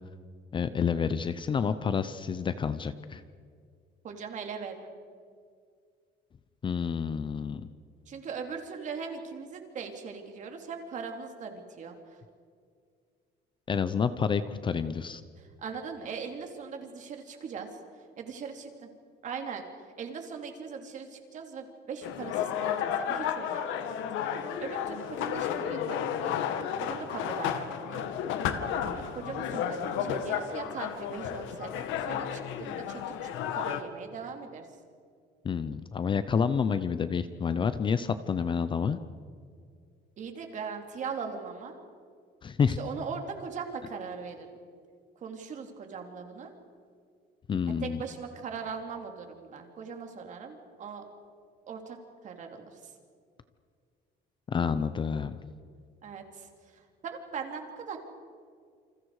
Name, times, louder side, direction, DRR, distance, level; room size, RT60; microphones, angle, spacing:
voice 1, 0.5-3.2 6.6-7.7 13.7-15.2 35.4-39.0 42.4-42.8 47.5-48.0 54.5-55.4, left 6 dB, 25° left, 12 dB, 0.6 m, -29 dB
voice 2, 4.0-4.9 8.1-12.2 15.4-18.9 19.2-24.0 24.2-26.3 26.8-28.1 28.5-33.3 33.5-34.7 40.2-41.8 42.8-44.6 45.2-46.5 47.7-51.1 51.7-52.0 52.2-52.9 56.0-58.0, right 5 dB, 40° right, 4 dB, 3.0 m, -40 dB
sound 1, 22.0-33.8, left 9 dB, 85° left, 1.8 m, -32 dB
29.0 x 27.0 x 4.9 m, 2.2 s
cardioid pair, 165°, 19 cm